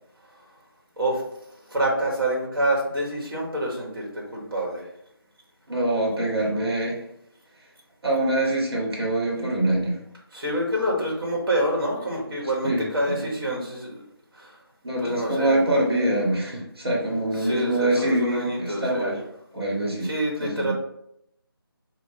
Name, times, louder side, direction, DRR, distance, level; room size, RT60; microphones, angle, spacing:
voice 1, 1.7-4.8 10.3-14.0 14.4-14.5 15.0-15.6 17.4-19.2 20.0-20.7, right 1 dB, 65° right, -2 dB, 1.3 m, -27 dB
voice 2, 5.7-7.0 8.0-10.0 12.6-13.2 14.8-19.2 19.5-20.1 20.4-20.7, right 1 dB, 85° right, -2 dB, 1.3 m, -24 dB
3.8 x 2.4 x 3.8 m, 0.77 s
figure-of-eight pair, 175°, 13 cm